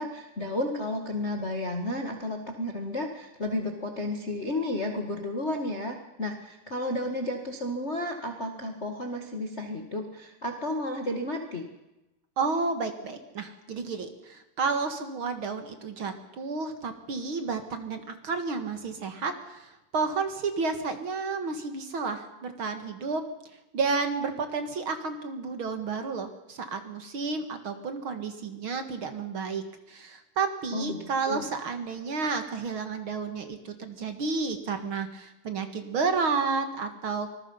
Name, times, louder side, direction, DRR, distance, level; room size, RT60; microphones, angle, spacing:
voice 1, 0.0-11.7 30.7-31.4, left 1 dB, 60° left, 3 dB, 0.7 m, -32 dB
voice 2, 12.4-23.2 23.7-37.3, right 4 dB, 50° right, 8 dB, 1.6 m, -31 dB
25.5 x 20.5 x 5.7 m, 0.97 s
omnidirectional pair, 4.7 m